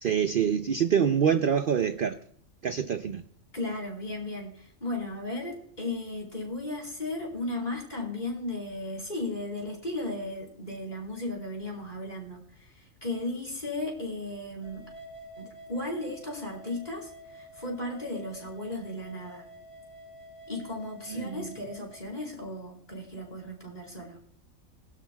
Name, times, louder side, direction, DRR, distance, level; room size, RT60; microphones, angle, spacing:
voice 1, 0.0-2.2 2.6-3.2 21.1-21.5, right 8 dB, 55° right, 9 dB, 0.6 m, -26 dB
voice 2, 3.5-14.8 15.4-19.4 20.5-24.2, left 2 dB, 30° left, 0 dB, 4.5 m, -35 dB
sound 1, 14.6-22.3, equal, 5° right, 2.6 m, -49 dB
21.5 x 12.0 x 2.3 m, 0.65 s
omnidirectional pair, 1.5 m